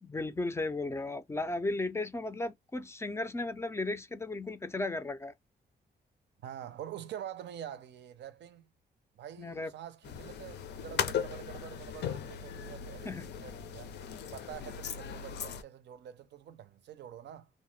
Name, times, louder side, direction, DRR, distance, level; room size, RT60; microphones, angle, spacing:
voice 1, 0.0-5.3 9.4-9.7 13.0-13.3, left 2 dB, 15° left, 0.3 m, -35 dB
voice 2, 6.4-8.7 9.1-10.6 10.8-13.9 14.3-17.5, right 10 dB, 85° right, 0.5 m, -46 dB
sound 1, 10.0-15.6, left 8 dB, 75° left, 0.5 m, -38 dB
2.7 x 2.1 x 3.1 m
wide cardioid pair, 150°, 18 cm